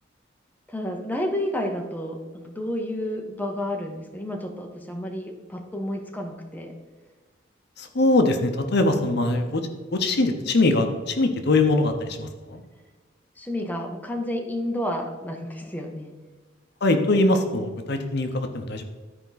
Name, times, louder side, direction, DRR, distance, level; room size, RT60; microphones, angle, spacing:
voice 1, 0.7-6.7 13.4-16.1, left 1 dB, 10° left, 2 dB, 0.8 m, -30 dB
voice 2, 7.8-9.6 9.9-12.6 16.8-18.8, left 2 dB, 60° left, 6 dB, 0.8 m, -22 dB
12.5 x 4.7 x 4.0 m, 1.3 s
head